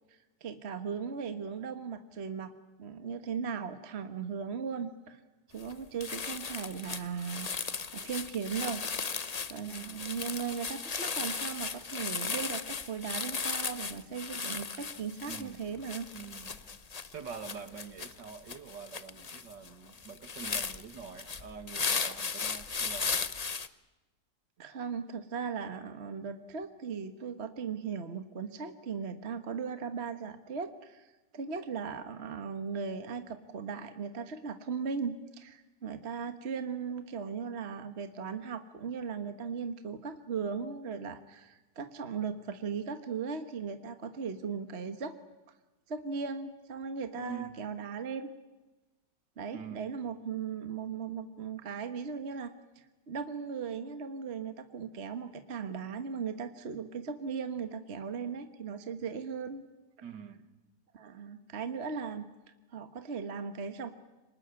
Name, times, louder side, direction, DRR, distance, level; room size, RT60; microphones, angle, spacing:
voice 1, 0.1-5.2 5.5-8.8 9.5-16.1 24.6-45.1 45.9-48.3 49.4-59.6 60.9-62.2 62.7-63.9, right 6 dB, 40° right, 9 dB, 1.5 m, -38 dB
sound 1, 5.6-5.7 6.0-23.7, left 5 dB, 35° left, 0.7 m, -36 dB
voice 2, 9.6-10.1 15.3-15.7 16.1-16.6 17.1-23.2 47.2-47.6 49.5-49.8 60.0-60.5, right 6 dB, 75° right, 10 dB, 2.5 m, -45 dB
25.0 x 20.0 x 9.8 m, 1.1 s
omnidirectional pair, 1.9 m